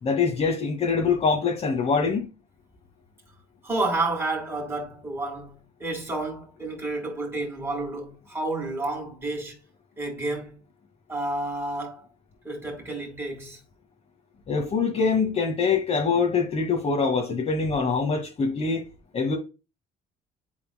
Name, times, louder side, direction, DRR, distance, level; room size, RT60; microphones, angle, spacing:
voice 1, 0.0-2.3 14.5-18.8 19.1-19.4, left 5 dB, 40° left, 1.9 m, -24 dB
voice 2, 3.6-9.6 10.0-10.6 11.1-12.1 12.4-13.6, right 2 dB, 15° right, 4.2 m, -30 dB
11.5 x 4.4 x 2.2 m
cardioid pair, 110°, 17 cm